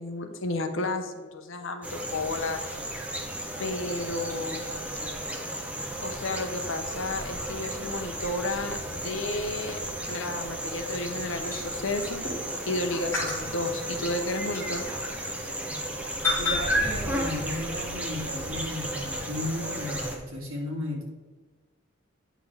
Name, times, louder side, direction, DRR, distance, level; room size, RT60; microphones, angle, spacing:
voice 1, 0.0-2.6 3.6-4.8 6.0-12.2 12.7-14.9, left 2 dB, 65° left, 7 dB, 0.8 m, -32 dB
sound 1, 1.8-20.2, right 1 dB, 5° right, 0.8 m, -34 dB
sound 2, 2.3-12.7 13.1-15.9 16.2-16.9, left 3 dB, 10° left, 2.4 m, -38 dB
voice 2, 16.4-21.0, left 1 dB, 80° right, -2 dB, 2.3 m, -34 dB
9.3 x 6.0 x 3.4 m, 1.4 s
head